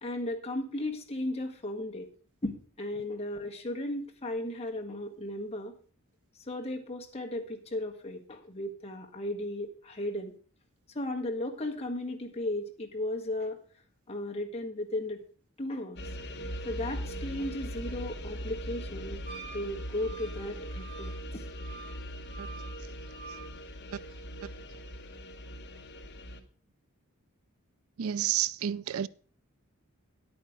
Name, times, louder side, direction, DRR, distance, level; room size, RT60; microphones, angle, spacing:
voice 1, 0.0-2.1 2.4-2.5 2.8-5.7 6.5-10.3 10.9-13.6 14.1-15.2 15.6-16.0 16.6-19.2 19.5-21.4, left 1 dB, 30° left, 1.5 m, -35 dB
sound 1, 16.0-26.4, equal, 50° left, 1.3 m, -40 dB
Wind instrument woodwind instrument, 19.3-23.5, right 5 dB, 25° right, 2.6 m, -48 dB
voice 2, 28.0-29.1, right 10 dB, 75° right, 0.4 m, -30 dB
10.5 x 8.7 x 5.0 m
head